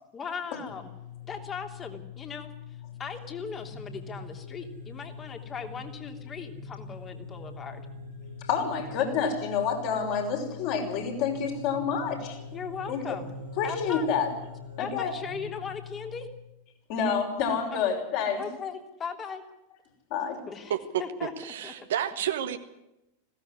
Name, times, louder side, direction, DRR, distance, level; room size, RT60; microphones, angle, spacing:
voice 1, 0.1-0.8 1.3-2.5 3.0-7.8 12.5-13.3 13.6-14.2 14.8-16.3 18.4-19.4 20.5-21.3 21.6-21.7, left 6 dB, 20° left, 5 dB, 3.0 m, -38 dB
sound 1, 0.7-16.3, left 5 dB, 85° left, 7.8 m, -43 dB
voice 2, 8.5-12.4 12.9-13.2 13.6-14.3 14.8-15.1 16.9-18.5 20.1-20.4, left 6 dB, 45° left, 0 dB, 5.8 m, -28 dB
voice 3, 21.2-22.6, right 10 dB, 60° right, 7 dB, 1.5 m, -30 dB
20.5 x 17.0 x 9.7 m, 0.91 s
figure-of-eight pair, 90°, 0 cm